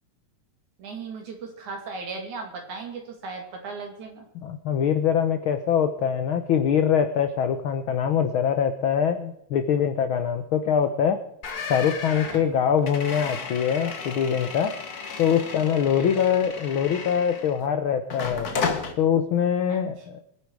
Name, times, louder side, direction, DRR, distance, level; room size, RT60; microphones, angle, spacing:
voice 1, 0.8-4.3 12.3-12.7 15.9-16.1 19.7-19.8, right 4 dB, 75° right, 2 dB, 4.2 m, -37 dB
voice 2, 4.4-11.2 11.7-14.8 15.2-18.5 19.0-20.2, left 8 dB, 75° left, 8 dB, 1.2 m, -23 dB
sound 1, 11.4-17.7 18.1-18.9, left 5 dB, 45° left, 1.4 m, -33 dB
22.5 x 10.0 x 4.8 m, 0.76 s
omnidirectional pair, 3.4 m